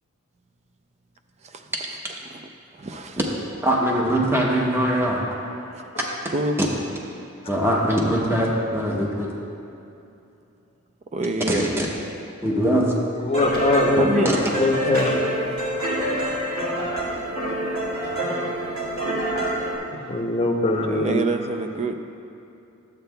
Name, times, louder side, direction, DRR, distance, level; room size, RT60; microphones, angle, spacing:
voice 1, 2.7-3.2 5.7-6.1 6.3-6.6 11.1-11.7 13.9-14.3 15.2-15.7 17.5-17.6 18.0-18.2 18.8-18.9 19.4-19.8 20.1-20.2 20.9-22.0, right 2 dB, 30° right, 7 dB, 0.4 m, -28 dB
voice 2, 3.6-5.2 7.5-9.3 11.5-11.9 12.4-12.9, equal, 10° right, -2 dB, 0.8 m, -22 dB
voice 3, 13.2-14.3 14.6-15.1 20.1-21.2, left 2 dB, 25° left, 1 dB, 0.7 m, -22 dB
sound 1, 13.3-19.8, equal, 85° right, 2.0 m, -26 dB
12.5 x 7.8 x 2.3 m, 2.7 s
head